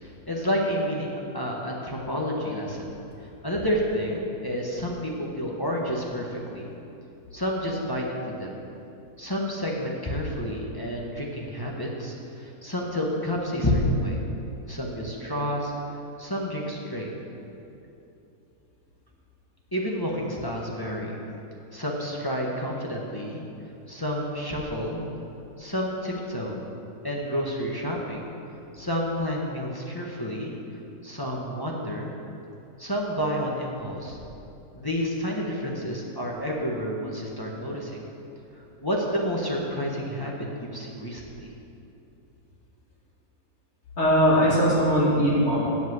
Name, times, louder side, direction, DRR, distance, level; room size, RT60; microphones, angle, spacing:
voice 1, 0.0-2.9 3.2-6.7 7.3-8.5 9.2-14.2 14.7-17.1 19.7-21.2 21.7-23.4 23.9-25.0 25.6-26.5 27.0-28.3 28.7-30.5 31.0-32.1 32.8-34.2 34.7-38.0 38.5-41.5, equal, 15° left, -3 dB, 1.1 m, -29 dB
voice 2, 44.0-45.7, equal, 45° left, -7 dB, 3.1 m, -20 dB
8.2 x 7.8 x 8.0 m, 2.8 s
omnidirectional pair, 1.6 m